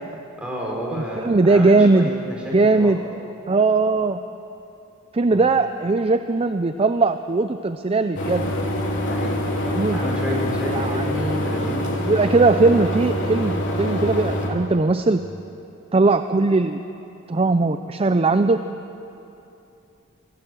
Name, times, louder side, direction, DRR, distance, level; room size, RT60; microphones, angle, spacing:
voice 1, 0.4-2.9 5.3-5.5 9.1-9.3 9.9-11.8, equal, 5° right, -3 dB, 4.5 m, -30 dB
voice 2, 0.9-2.1 2.5-3.0 3.5-4.2 5.1-8.5 9.6-10.0 10.7-11.8 12.0-15.2 15.9-16.8 17.3-18.6, right 3 dB, 25° right, 9 dB, 0.5 m, -19 dB
sound 1, 8.2-14.5, equal, 60° left, 3.3 m, -25 dB
24.0 x 16.5 x 7.7 m, 2.8 s
head